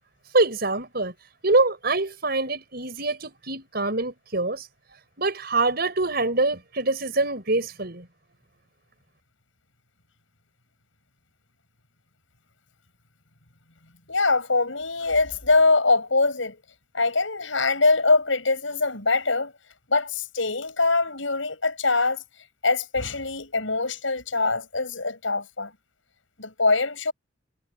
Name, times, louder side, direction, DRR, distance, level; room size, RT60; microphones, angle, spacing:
voice 1, 0.3-1.1 1.4-4.7 5.2-8.1, right 2 dB, 55° right, 6.4 m, -24 dB
voice 2, 14.1-16.6 16.9-19.5 19.9-22.2 22.6-25.7 26.4-27.1, left 3 dB, 80° left, 6.7 m, -23 dB
head